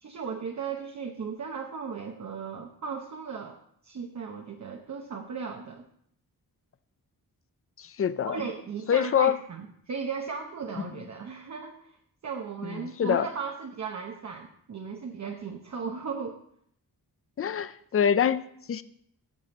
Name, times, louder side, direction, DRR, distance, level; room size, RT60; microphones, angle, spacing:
voice 1, 0.0-3.6 3.8-5.9 8.3-12.0 12.2-16.4, right 5 dB, 45° right, 2 dB, 0.8 m, -36 dB
voice 2, 7.8-8.4 8.9-9.4 10.8-10.9 12.6-13.3 17.4-18.8, left 8 dB, 40° left, 15 dB, 0.4 m, -26 dB
15.0 x 6.8 x 4.3 m, 0.70 s
wide cardioid pair, 175°, 38 cm